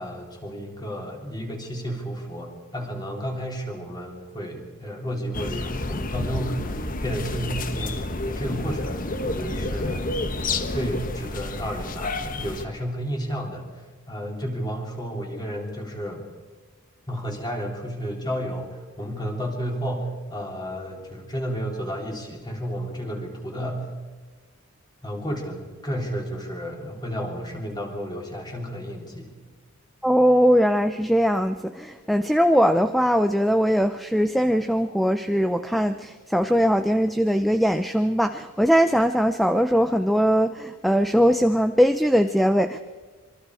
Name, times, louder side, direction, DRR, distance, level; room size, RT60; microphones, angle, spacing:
voice 1, 0.0-10.1 10.5-16.2 17.1-23.9 25.0-29.3, equal, 20° left, 1 dB, 3.7 m, -32 dB
sound 1, 5.3-12.6, left 2 dB, 40° left, 1.2 m, -29 dB
voice 2, 30.0-42.8, equal, ahead, 9 dB, 0.6 m, -20 dB
27.0 x 23.5 x 4.9 m, 1.4 s
head